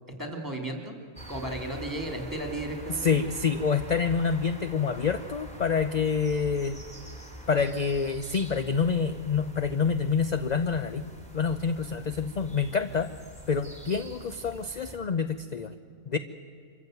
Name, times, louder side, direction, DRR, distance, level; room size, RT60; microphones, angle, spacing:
voice 1, 0.1-1.0 1.3-3.0, right 1 dB, 15° right, 3 dB, 3.1 m, -34 dB
sound 1, 1.2-15.0, equal, 5° left, 3.7 m, -45 dB
voice 2, 3.0-6.8 7.5-11.0 11.3-13.1 13.5-15.7 16.1-16.2, left 5 dB, 45° left, 10 dB, 0.6 m, -27 dB
25.5 x 14.5 x 9.3 m, 2.4 s
omnidirectional pair, 1.5 m